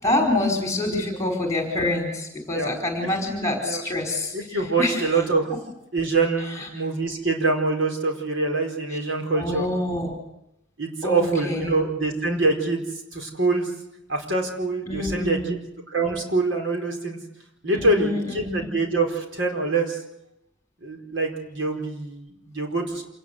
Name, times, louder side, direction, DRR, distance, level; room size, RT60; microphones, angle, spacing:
voice 1, 0.0-5.2 6.4-6.7 8.9-9.0 9.3-10.2 11.0-11.7 14.9-15.5 17.7-18.7, left 2 dB, 15° left, 2 dB, 4.7 m, -26 dB
voice 2, 4.3-5.5 5.9-9.7 10.8-12.8 13.1-13.7 14.1-15.4 15.9-17.2 17.6-20.0 20.8-23.1, right 3 dB, 70° right, 3 dB, 4.6 m, -25 dB
27.0 x 19.0 x 8.1 m, 0.83 s
head